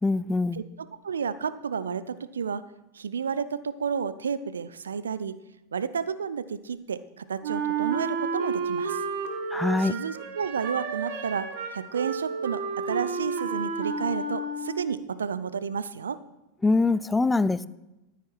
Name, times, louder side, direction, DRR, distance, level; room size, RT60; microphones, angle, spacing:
voice 1, 0.0-0.6 9.5-9.9 16.6-17.7, left 3 dB, 10° left, 18 dB, 0.4 m, -23 dB
voice 2, 0.5-2.6 2.9-5.4 5.7-9.0 9.8-16.2, right 6 dB, 75° right, 14 dB, 0.6 m, -31 dB
Wind instrument woodwind instrument, 7.4-15.0, right 5 dB, 60° right, 1.7 m, -31 dB
14.0 x 9.1 x 4.7 m, 0.96 s
figure-of-eight pair, 90°, 0 cm